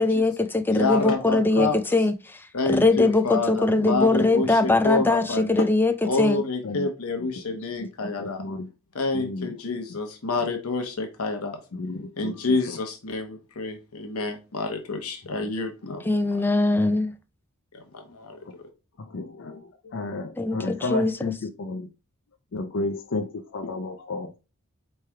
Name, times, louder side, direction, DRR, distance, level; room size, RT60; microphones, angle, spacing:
voice 1, 0.0-2.4 2.7-5.9 6.2-6.4 16.1-17.1 20.4-21.1, left 2 dB, 10° left, 0.4 m, -21 dB
voice 2, 0.7-1.8 2.5-5.5 6.0-8.4 8.9-11.6 12.2-16.1 17.7-18.4, left 3 dB, 85° left, 0.9 m, -28 dB
voice 3, 7.8-8.7 9.1-9.6 11.7-12.8 15.4-15.5 18.0-18.2 18.4-18.5 19.0-21.9 22.5-24.3, left 3 dB, 60° left, 0.5 m, -33 dB
4.4 x 3.2 x 3.5 m
head